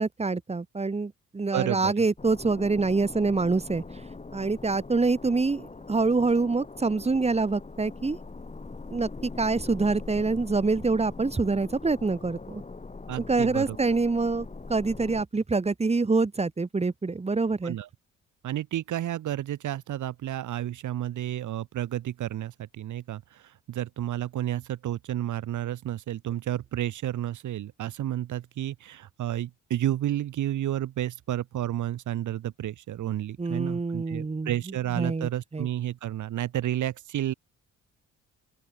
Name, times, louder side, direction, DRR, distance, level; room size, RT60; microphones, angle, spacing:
voice 1, 0.0-3.8 4.3-8.2 8.9-12.6 13.3-17.8 33.4-34.5 34.9-35.7, right 3 dB, 20° right, 1.7 m, -26 dB
voice 2, 1.5-1.9 13.1-13.8 17.6-17.9 18.4-23.4 23.7-37.3, right 12 dB, 75° right, 6.6 m, -31 dB
sound 1, 2.2-15.2, left 3 dB, 25° left, 4.4 m, -42 dB
open air
cardioid pair, 90°, 30 cm